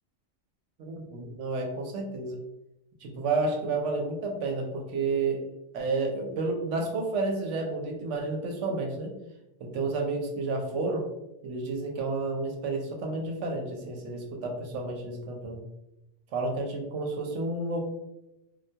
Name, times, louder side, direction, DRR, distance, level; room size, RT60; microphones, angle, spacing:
voice 1, 0.8-2.4 3.0-5.4 5.7-9.1 9.6-11.1 11.4-15.6 16.3-17.8, right 3 dB, 75° right, 1 dB, 0.9 m, -31 dB
2.3 x 2.2 x 2.7 m, 0.91 s
omnidirectional pair, 1.3 m